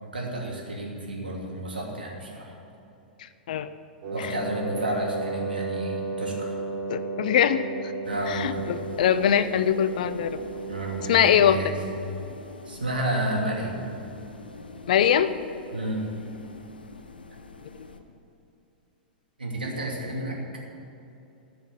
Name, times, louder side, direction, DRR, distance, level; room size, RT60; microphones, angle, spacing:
voice 1, 0.0-2.5 4.1-6.5 8.0-8.6 10.6-11.8 12.7-13.8 15.7-16.1 19.4-20.4, right 1 dB, 75° right, -1 dB, 2.8 m, -31 dB
voice 2, 3.2-3.7 4.2-4.3 6.9-7.6 8.3-10.4 11.1-11.6 14.9-15.3 17.7-17.9, left 9 dB, 55° left, 13 dB, 0.6 m, -22 dB
Wind instrument woodwind instrument, 4.0-11.6, right 3 dB, 40° right, 3.3 m, -34 dB
sound 1, 8.0-18.0, left 3 dB, 75° left, 1.0 m, -45 dB
13.0 x 6.2 x 9.7 m, 2.8 s
figure-of-eight pair, 100°, 5 cm